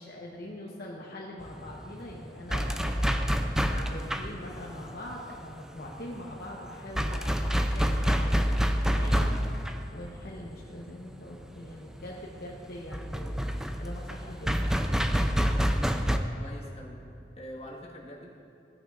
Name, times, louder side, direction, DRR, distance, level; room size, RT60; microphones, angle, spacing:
voice 1, 0.0-9.3 9.9-13.4 13.8-14.7, left 1 dB, 60° left, -3 dB, 1.0 m, -43 dB
sound 1, 1.4-16.2, equal, 5° right, 0.4 m, -28 dB
voice 2, 16.1-17.0 17.4-18.3, equal, 35° left, -3 dB, 1.5 m, -44 dB
15.5 x 9.0 x 2.5 m, 2.6 s
head